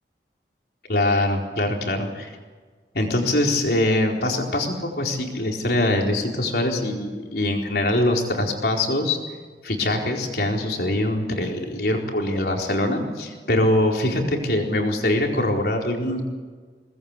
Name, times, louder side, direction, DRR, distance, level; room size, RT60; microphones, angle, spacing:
voice 1, 0.9-2.3 2.9-9.2 9.6-16.2, left 1 dB, 60° left, 1 dB, 4.3 m, -23 dB
22.5 x 19.5 x 8.4 m, 1.5 s
head